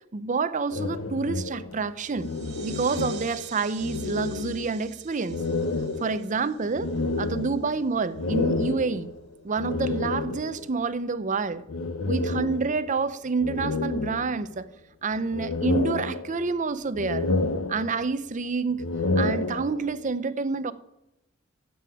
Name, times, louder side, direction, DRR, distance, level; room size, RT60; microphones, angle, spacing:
voice 1, 0.1-2.3 2.6-5.4 6.0-6.9 7.2-9.1 9.4-11.6 12.1-14.7 15.0-17.3 17.7-18.8 19.2-20.7, right 4 dB, 35° right, 0.6 m, -28 dB
sound 1, 0.7-3.5 3.8-4.9 5.3-10.7 11.7-13.0 13.4-14.7 15.1-16.6 16.9-18.2 18.7-20.0, left 2 dB, 85° left, 0.8 m, -30 dB
sound 2, 2.1-7.4, right 9 dB, 55° right, 1.9 m, -47 dB
9.5 x 8.5 x 9.2 m
head